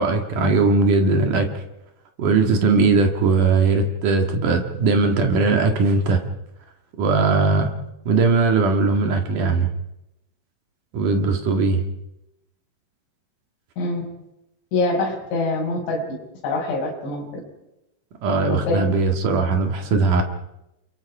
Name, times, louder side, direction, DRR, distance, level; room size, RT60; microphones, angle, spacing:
voice 1, 0.0-1.5 2.2-6.2 7.0-7.7 8.1-9.7 10.9-11.8 18.2-20.2, right 3 dB, 55° right, 4 dB, 2.5 m, -19 dB
voice 2, 14.7-16.1 16.4-17.4 18.5-18.8, left 2 dB, 60° left, -2 dB, 8.1 m, -24 dB
29.5 x 24.0 x 4.9 m, 0.89 s
omnidirectional pair, 5.9 m